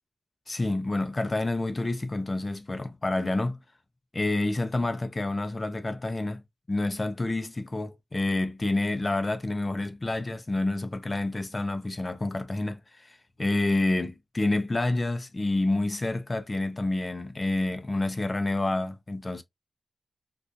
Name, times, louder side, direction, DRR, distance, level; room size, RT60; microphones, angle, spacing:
voice 1, 0.5-3.6 4.1-6.4 6.7-19.4, left 2 dB, 30° left, 0.6 m, -28 dB
3.6 x 2.4 x 2.7 m
wide cardioid pair, 90°, 0 cm